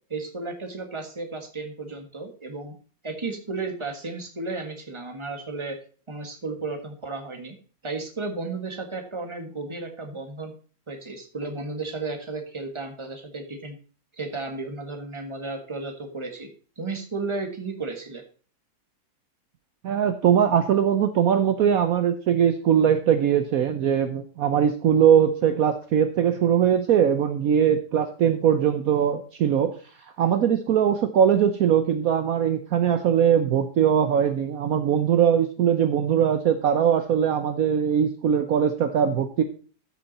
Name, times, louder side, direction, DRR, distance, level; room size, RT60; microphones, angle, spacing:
voice 1, 0.1-2.7 3.0-5.8 6.1-7.6 7.8-10.5 10.9-13.8 14.2-16.5 16.8-18.2, right 3 dB, 20° right, 4 dB, 1.6 m, -33 dB
voice 2, 19.8-39.4, right 8 dB, 65° right, 9 dB, 1.1 m, -21 dB
13.5 x 6.3 x 4.1 m, 0.39 s
omnidirectional pair, 1.8 m